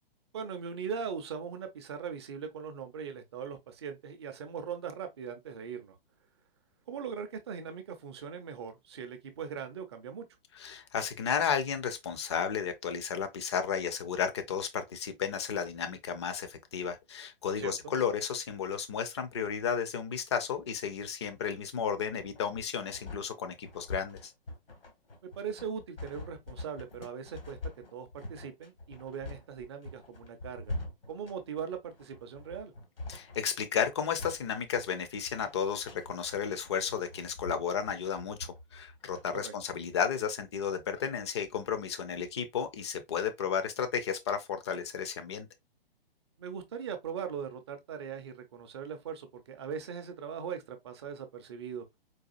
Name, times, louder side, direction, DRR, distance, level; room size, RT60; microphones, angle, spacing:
voice 1, 0.3-6.0 6.9-10.3 17.6-17.9 25.2-27.6 27.9-30.7 31.1-32.7 39.4-39.5 46.4-51.8, right 7 dB, 30° right, 0.4 m, -40 dB
voice 2, 10.5-24.3 33.1-45.5, left 7 dB, 30° left, 0.4 m, -33 dB
sound 1, 22.2-39.2, left 2 dB, 70° left, 1.1 m, -44 dB
4.0 x 2.4 x 2.4 m
figure-of-eight pair, 120°, 30 cm